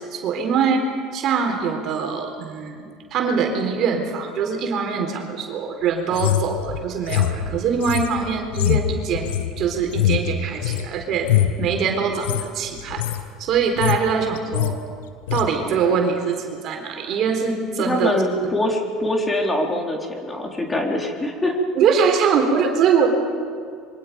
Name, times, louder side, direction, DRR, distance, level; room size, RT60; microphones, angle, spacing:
voice 1, 0.0-11.3 11.6-13.0 13.4-14.8 15.3-18.1 21.8-23.1, right 6 dB, 55° right, 3 dB, 4.0 m, -23 dB
sound 1, 6.1-10.9 11.2-11.6 12.1-12.4 12.8-13.2 13.5-14.1 14.3-14.7 15.3-15.5, left 12 dB, 80° left, 1.3 m, -23 dB
voice 2, 17.8-21.6, left 1 dB, 20° left, 1 dB, 4.0 m, -23 dB
27.0 x 23.5 x 5.3 m, 2.2 s
hypercardioid pair, 75°, 0 cm